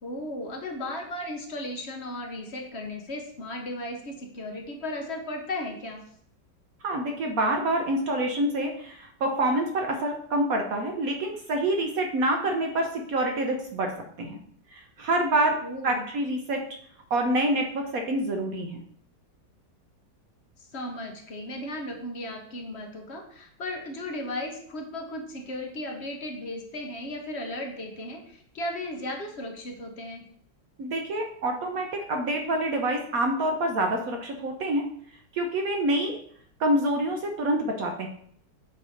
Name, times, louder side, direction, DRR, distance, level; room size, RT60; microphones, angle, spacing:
voice 1, 0.0-6.0 15.6-16.1 20.6-30.2, left 1 dB, 50° left, 2 dB, 0.9 m, -35 dB
voice 2, 6.8-13.9 14.2-14.4 14.7-15.6 15.8-16.6 17.1-18.8 30.8-34.8 35.3-36.2 36.6-38.1, right 1 dB, 65° right, 3 dB, 1.0 m, -26 dB
8.0 x 2.8 x 4.9 m, 0.64 s
omnidirectional pair, 1.9 m